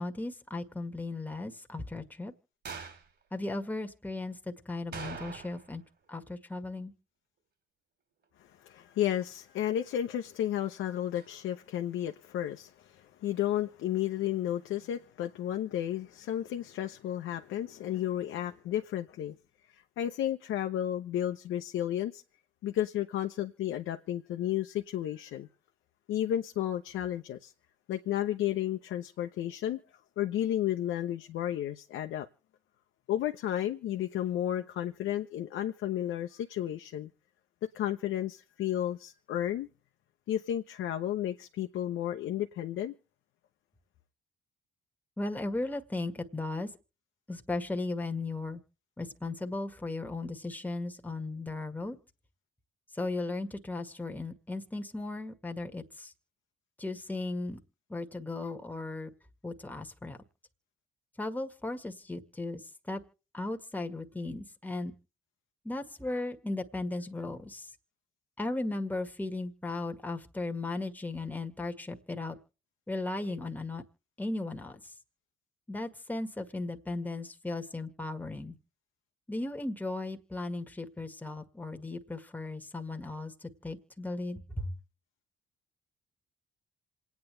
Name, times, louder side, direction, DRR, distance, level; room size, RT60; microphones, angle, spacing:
voice 1, 0.0-2.3 3.3-5.8 6.1-6.9 45.2-46.7 47.3-48.6 49.0-52.0 52.9-56.1 56.8-57.6 57.9-59.1 59.4-60.2 61.2-63.0 63.3-64.9 65.6-67.7 68.4-72.4 72.9-73.8 74.2-74.9 75.7-78.6 79.3-84.7, left 2 dB, 10° left, 1.8 m, -36 dB
sound 1, 2.7-3.1 4.9-5.8 6.0-6.1 11.2-11.3, right 5 dB, 60° right, 3.7 m, -42 dB
voice 2, 8.4-19.4 19.7-22.2 22.6-25.5 26.1-27.5 27.9-29.8 30.2-32.3 33.1-37.1 37.7-39.7 40.3-42.9, left 11 dB, 80° left, 1.0 m, -32 dB
27.0 x 9.4 x 3.3 m
cardioid pair, 90°, 20 cm